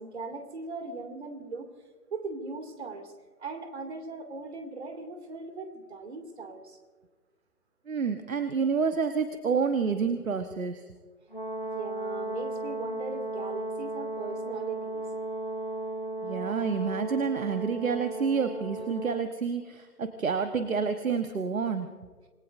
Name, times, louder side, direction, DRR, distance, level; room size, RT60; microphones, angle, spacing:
voice 1, 0.0-1.7 2.1-3.1 3.4-6.8 11.7-15.1, right 3 dB, 45° right, 6 dB, 2.6 m, -39 dB
voice 2, 7.9-10.8 16.2-21.9, right 5 dB, 60° right, 8 dB, 1.2 m, -29 dB
Brass instrument, 11.3-19.3, right 2 dB, 35° left, 0.4 m, -35 dB
27.0 x 20.0 x 2.6 m, 1.4 s
figure-of-eight pair, 150°, 46 cm